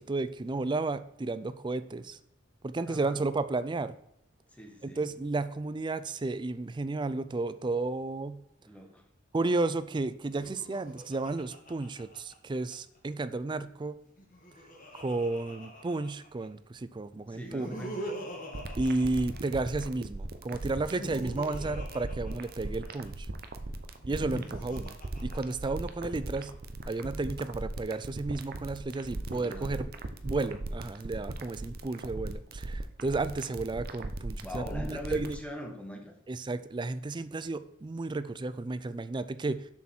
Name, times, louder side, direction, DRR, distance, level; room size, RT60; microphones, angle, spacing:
voice 1, 0.0-2.2 2.6-3.9 4.8-8.4 9.3-14.0 14.9-17.7 18.8-23.3 24.1-25.0 25.2-26.5 26.9-29.8 30.2-35.4 36.3-39.7, right 3 dB, 25° right, 14 dB, 0.4 m, -32 dB
voice 2, 2.9-3.2 4.5-5.1 8.7-9.1 17.3-18.0 29.3-29.7 34.4-36.1, equal, 5° left, 3 dB, 1.3 m, -42 dB
Laughter, 10.2-12.7 14.1-16.5 17.3-19.8 20.7-23.1 24.0-25.9, equal, 40° left, 1.8 m, -43 dB
sound 1, 18.5-35.3, right 2 dB, 50° right, 0.7 m, -38 dB
7.0 x 6.4 x 4.4 m, 0.78 s
head